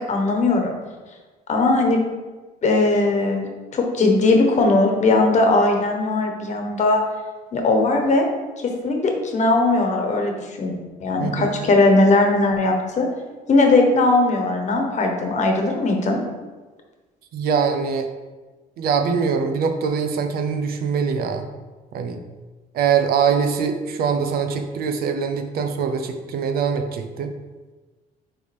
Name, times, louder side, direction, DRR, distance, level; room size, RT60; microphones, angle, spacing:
voice 1, 0.1-0.7 1.5-2.1 2.6-3.5 3.7-7.0 7.5-8.2 8.6-13.1 13.5-16.2, left 2 dB, 45° left, 2 dB, 1.3 m, -19 dB
voice 2, 11.2-11.7 17.3-18.1 18.8-21.5 21.9-22.2 22.7-27.3, right 6 dB, 65° right, 6 dB, 0.7 m, -23 dB
9.7 x 3.4 x 3.5 m, 1.3 s
cardioid pair, 110°, 17 cm